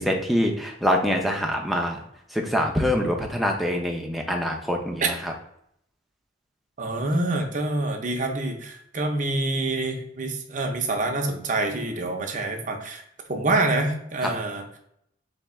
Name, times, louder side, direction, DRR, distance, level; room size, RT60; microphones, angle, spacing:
voice 1, 0.0-2.0 2.3-5.3 14.2-14.3, equal, ahead, 0 dB, 0.5 m, -25 dB
voice 2, 6.8-13.0 13.3-14.8, right 2 dB, 40° right, 3 dB, 0.7 m, -26 dB
3.5 x 2.9 x 4.2 m, 0.73 s
head